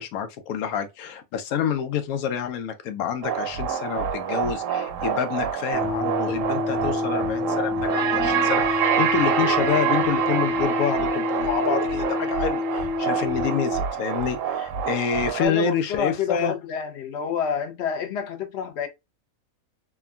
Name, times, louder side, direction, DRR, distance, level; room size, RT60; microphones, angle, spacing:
voice 1, 0.0-16.5, left 7 dB, 85° left, 1.1 m, -28 dB
sound 1, 3.2-15.5, right 8 dB, 70° right, 0.9 m, -26 dB
sound 2, 5.7-13.8, left 4 dB, 40° left, 1.1 m, -28 dB
sound 3, 7.7-8.5 9.2-10.1 11.6-12.1, right 1 dB, 20° right, 0.4 m, -33 dB
voice 2, 15.4-18.9, left 7 dB, 60° left, 0.7 m, -28 dB
3.4 x 2.2 x 2.2 m
omnidirectional pair, 1.5 m